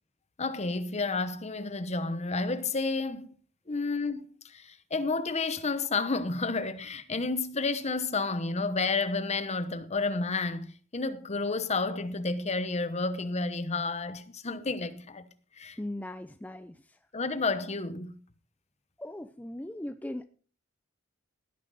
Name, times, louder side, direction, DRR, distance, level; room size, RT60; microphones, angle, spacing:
voice 1, 0.4-3.4 3.7-15.3 15.6-15.8 17.1-18.1, left 3 dB, 35° left, 1.0 m, -31 dB
voice 2, 15.8-17.0 19.0-20.3, left 1 dB, 10° left, 0.5 m, -39 dB
17.0 x 9.8 x 4.1 m
head